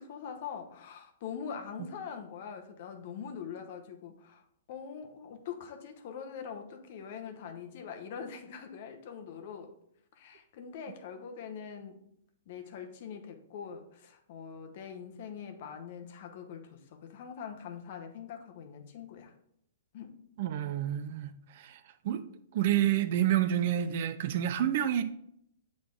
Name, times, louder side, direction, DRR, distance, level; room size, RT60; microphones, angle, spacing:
voice 1, 0.0-9.7 10.2-12.0 12.5-19.3 19.9-20.1, left 7 dB, 50° left, 1.0 m, -43 dB
voice 2, 20.4-21.8 22.0-22.2 22.5-25.0, right 11 dB, 50° right, 0.5 m, -29 dB
7.6 x 3.8 x 3.5 m
hypercardioid pair, 120°, 0 cm